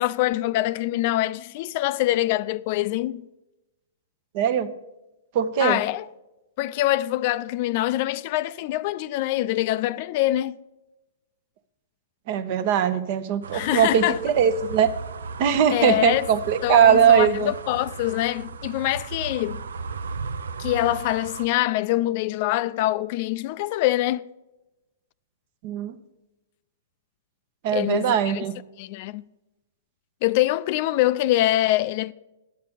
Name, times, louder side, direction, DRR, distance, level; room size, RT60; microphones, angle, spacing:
voice 1, 0.0-3.3 5.6-6.0 6.6-10.6 13.5-14.2 15.7-16.3 16.6-19.6 20.6-24.2 27.7-28.4 28.8-29.2 30.2-32.1, left 15 dB, 50° left, 0.3 m, -24 dB
voice 2, 4.3-4.7 5.3-5.8 12.3-14.9 15.4-17.5 25.6-26.0 27.6-28.5, right 8 dB, 50° right, 0.8 m, -20 dB
sound 1, 13.4-21.5, right 4 dB, 80° right, 0.5 m, -36 dB
10.5 x 6.6 x 5.3 m
hypercardioid pair, 125°, 0 cm